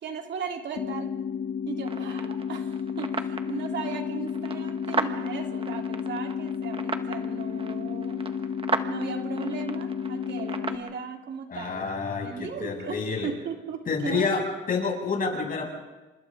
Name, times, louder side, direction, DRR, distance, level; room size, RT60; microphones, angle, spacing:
voice 1, 0.0-1.1 1.7-8.2 8.9-12.0 12.2-14.3, right 6 dB, 65° right, 1 dB, 3.6 m, -37 dB
sound 1, 0.8-10.8, left 7 dB, 65° left, 2.6 m, -32 dB
sound 2, 1.8-10.9, right 3 dB, 25° right, 1.7 m, -36 dB
voice 2, 11.5-13.3 13.9-15.7, left 4 dB, 45° left, 0 dB, 7.5 m, -28 dB
30.0 x 27.0 x 3.8 m, 1.2 s
cardioid pair, 90°, 20 cm